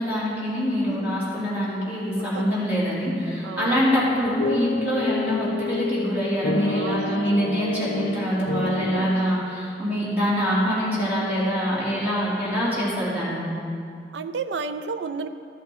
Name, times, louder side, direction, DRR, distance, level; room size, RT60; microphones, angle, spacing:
voice 1, 0.0-13.5, equal, 10° right, -9 dB, 3.0 m, -24 dB
voice 2, 3.4-3.8 6.7-7.0 8.8-9.3 14.1-15.3, right 4 dB, 90° right, 10 dB, 0.4 m, -32 dB
sound 1, 4.4-9.1, left 3 dB, 70° left, 0.5 m, -29 dB
13.0 x 8.5 x 4.4 m, 2.4 s
head